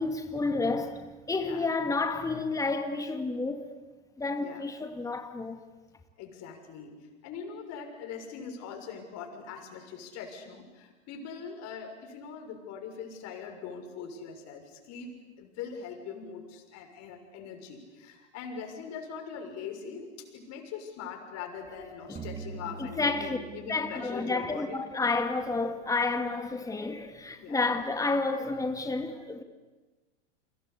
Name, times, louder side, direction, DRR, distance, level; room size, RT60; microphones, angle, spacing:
voice 1, 0.0-3.7 4.2-5.6 22.1-22.2 22.8-23.4 23.7-29.4, left 3 dB, 10° left, 2.1 m, -30 dB
voice 2, 6.2-20.1 20.3-24.8 27.4-27.6, left 6 dB, 45° left, 6.6 m, -42 dB
sound 1, 22.1-25.4, right 4 dB, 20° right, 2.2 m, -43 dB
29.5 x 23.5 x 8.5 m
hypercardioid pair, 105°, 36 cm